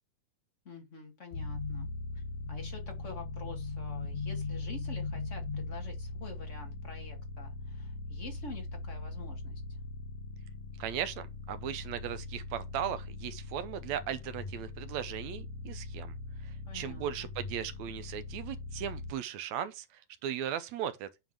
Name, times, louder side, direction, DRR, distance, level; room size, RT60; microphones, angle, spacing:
voice 1, 0.6-1.9 2.1-2.2 2.5-9.6 16.7-17.3, left 4 dB, 30° left, 1.7 m, -47 dB
sound 1, 1.3-19.1, left 3 dB, 70° left, 2.4 m, -40 dB
voice 2, 10.8-16.1 16.4-21.3, right 9 dB, 75° right, 2.0 m, -37 dB
9.2 x 3.6 x 4.7 m
omnidirectional pair, 3.4 m